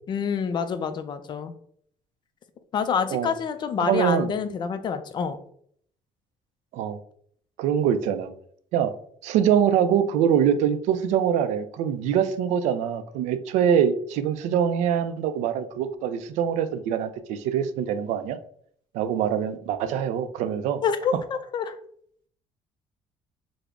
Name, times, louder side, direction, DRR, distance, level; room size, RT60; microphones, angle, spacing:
voice 1, 0.1-1.5 2.7-5.4 20.8-21.8, left 6 dB, 40° left, 10 dB, 0.4 m, -27 dB
voice 2, 3.8-4.3 6.7-7.0 7.6-8.3 8.7-8.9 9.2-18.4 18.9-20.8, right 8 dB, 90° right, 10 dB, 0.4 m, -24 dB
3.6 x 2.0 x 3.4 m, 0.62 s
cardioid pair, 115°, 12 cm